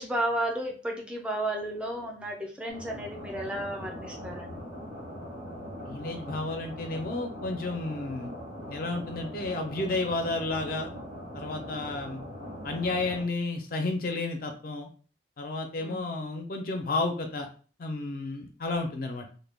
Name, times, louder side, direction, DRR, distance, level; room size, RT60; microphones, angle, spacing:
voice 1, 0.0-4.6 15.8-16.0, right 1 dB, 5° right, 0 dB, 0.4 m, -33 dB
sound 1, 2.7-13.2, equal, 75° right, 1.0 m, -41 dB
voice 2, 5.9-8.3 8.7-10.9 11.3-12.2 12.6-14.9 15.4-17.5 17.8-19.2, left 2 dB, 50° left, 4 dB, 0.4 m, -32 dB
2.1 x 2.1 x 3.3 m, 0.39 s
head